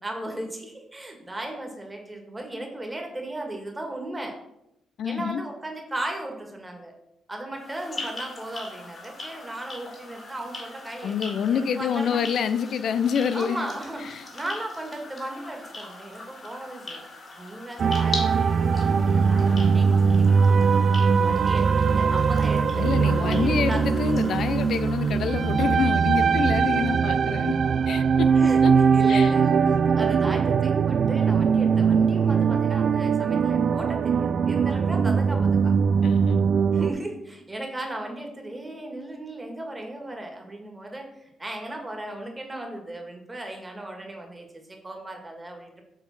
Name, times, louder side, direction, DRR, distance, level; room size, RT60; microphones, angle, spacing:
voice 1, 0.0-4.4 5.0-6.9 7.3-12.2 13.3-17.0 17.4-23.8 28.4-35.7 36.7-45.8, right 1 dB, 15° right, 2 dB, 1.7 m, -36 dB
voice 2, 5.0-5.4 11.0-13.7 14.0-14.2 21.1-21.4 22.7-27.5 27.9-28.3 28.6-28.7 29.1-29.3 36.0-36.4, left 7 dB, 65° left, 12 dB, 0.4 m, -27 dB
sound 1, 7.5-26.0, left 2 dB, 40° left, 2.5 m, -41 dB
sound 2, 17.8-36.9, right 6 dB, 50° right, 0.3 m, -21 dB
7.2 x 3.7 x 5.8 m, 0.86 s
cardioid pair, 90°, 0 cm